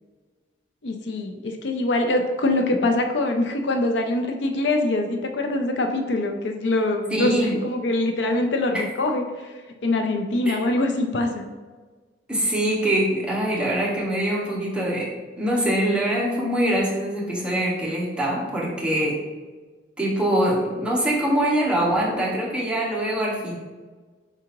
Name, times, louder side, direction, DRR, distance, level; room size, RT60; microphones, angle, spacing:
voice 1, 0.8-7.3 7.6-9.5 9.8-11.5, left 2 dB, 90° left, 4 dB, 0.5 m, -24 dB
voice 2, 7.1-7.5 10.4-10.6 12.3-19.2 20.0-23.6, right 1 dB, 5° right, -4 dB, 1.0 m, -23 dB
4.7 x 3.7 x 3.0 m, 1.4 s
head